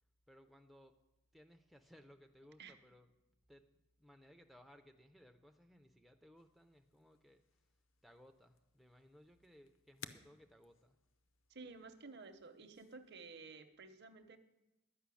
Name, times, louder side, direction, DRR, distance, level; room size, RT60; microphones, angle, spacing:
voice 1, 0.3-1.0 1.3-3.1 3.5-7.7 8.0-11.0, equal, ahead, 4 dB, 0.4 m, -63 dB
sound 1, 6.4-13.3, left 7 dB, 70° left, 0.6 m, -61 dB
voice 2, 11.5-14.4, right 4 dB, 50° right, 8 dB, 0.7 m, -53 dB
11.5 x 5.5 x 8.2 m, 0.96 s
head